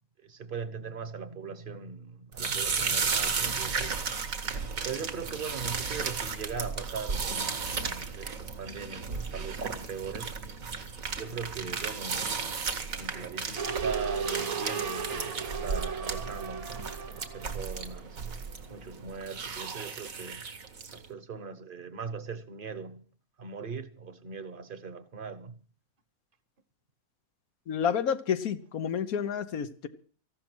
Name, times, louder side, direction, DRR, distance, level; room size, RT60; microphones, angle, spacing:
voice 1, 0.2-4.0 4.8-10.3 11.2-18.2 18.7-20.4 20.9-23.0 23.4-25.6, right 5 dB, 40° right, 1.1 m, -40 dB
sound 1, 2.3-21.1, right 5 dB, 70° right, 1.9 m, -34 dB
sound 2, 13.6-18.5 18.8-18.9, right 6 dB, 55° right, 1.5 m, -36 dB
voice 2, 27.7-29.9, left 7 dB, 90° left, 1.5 m, -30 dB
14.5 x 12.0 x 6.1 m
omnidirectional pair, 1.5 m